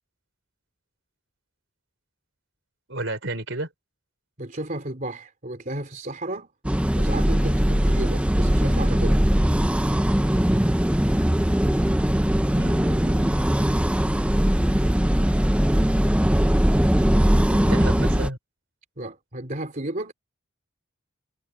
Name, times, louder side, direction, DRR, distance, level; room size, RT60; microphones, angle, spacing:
voice 1, 2.9-3.7 12.6-13.3 17.5-18.4, right 2 dB, 60° right, 5.0 m, -32 dB
voice 2, 4.4-6.5 6.9-9.2 19.0-20.1, right 1 dB, 40° right, 3.6 m, -33 dB
sound 1, 6.6-18.3, equal, 5° right, 0.6 m, -20 dB
head